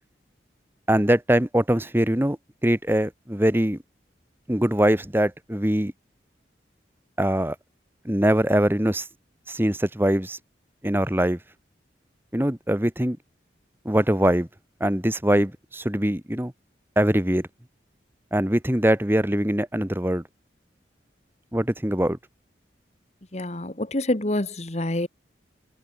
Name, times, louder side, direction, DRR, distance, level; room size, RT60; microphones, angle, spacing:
voice 1, 0.9-2.4 2.6-3.8 4.5-5.9 7.2-7.5 8.0-9.1 9.5-10.4 10.8-11.4 12.3-13.2 13.8-14.5 14.8-16.5 17.0-17.5 18.3-20.2 21.5-22.2, right 1 dB, 10° right, 1.4 m, -22 dB
voice 2, 23.3-25.1, left 1 dB, 35° left, 1.4 m, -27 dB
head